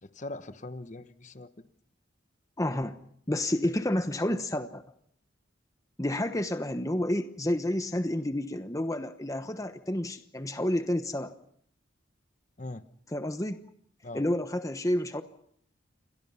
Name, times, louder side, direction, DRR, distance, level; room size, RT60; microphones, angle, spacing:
voice 1, 0.0-1.7 12.6-12.8 14.0-14.2, left 2 dB, 40° left, 11 dB, 1.1 m, -41 dB
voice 2, 2.6-3.0 3.3-4.8 6.0-11.3 13.1-13.6 14.1-15.2, left 1 dB, 15° left, 9 dB, 1.0 m, -30 dB
29.0 x 23.0 x 5.7 m, 0.67 s
head